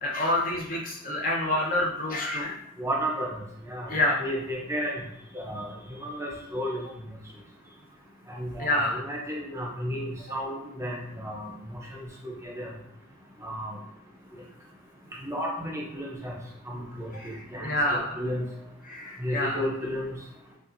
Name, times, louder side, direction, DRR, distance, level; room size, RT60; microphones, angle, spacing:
voice 1, 0.0-2.6 3.9-4.3 8.6-9.0 17.1-18.2 18.8-19.6, left 1 dB, 45° left, -2 dB, 0.8 m, -28 dB
voice 2, 2.8-5.0 5.3-5.7 6.0-7.1 8.3-12.7 13.4-13.8 15.2-16.3 16.7-18.4 19.2-20.1, equal, 15° right, -1 dB, 0.6 m, -33 dB
5.4 x 2.4 x 2.6 m, 0.82 s
head